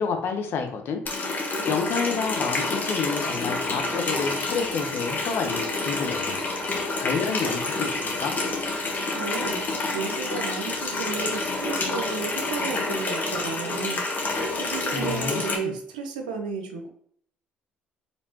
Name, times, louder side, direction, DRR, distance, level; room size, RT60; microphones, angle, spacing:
voice 1, 0.0-8.4 14.9-15.7, left 5 dB, 60° left, 5 dB, 0.8 m, -30 dB
Water tap faucet, 1.1-15.6, left 2 dB, 40° left, 1.3 m, -28 dB
voice 2, 9.1-16.9, right 5 dB, 90° right, 4 dB, 0.7 m, -33 dB
5.2 x 3.3 x 2.8 m, 0.62 s
hypercardioid pair, 55°, 4 cm